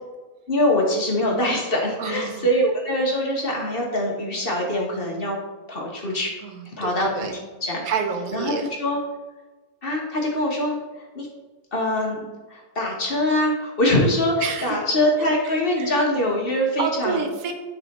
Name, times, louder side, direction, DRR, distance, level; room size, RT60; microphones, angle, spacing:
voice 1, 0.5-5.4 5.7-6.3 6.8-7.8 8.3-9.0 9.8-10.8 11.1-11.3 11.7-17.2, left 1 dB, 40° left, -1 dB, 1.3 m, -23 dB
voice 2, 2.0-2.5 6.4-7.4 7.9-8.7 14.4-14.8 15.8-15.9 16.8-17.5, right 6 dB, 75° right, 5 dB, 1.2 m, -28 dB
9.6 x 3.4 x 4.1 m, 1.2 s
omnidirectional pair, 1.6 m